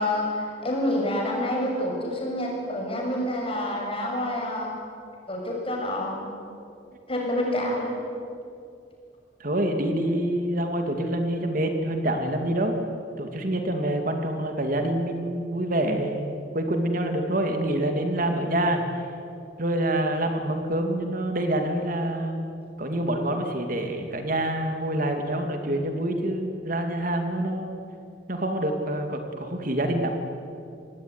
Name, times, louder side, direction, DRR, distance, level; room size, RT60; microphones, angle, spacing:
voice 1, 0.0-4.7 5.3-6.2 7.1-7.9 28.7-28.8, left 1 dB, 30° left, -1 dB, 7.2 m, -28 dB
voice 2, 9.4-12.8 13.2-18.8 19.6-22.5 22.8-27.7 28.3-30.2, right 1 dB, 50° right, 5 dB, 2.6 m, -26 dB
27.5 x 19.5 x 9.8 m, 2.5 s
head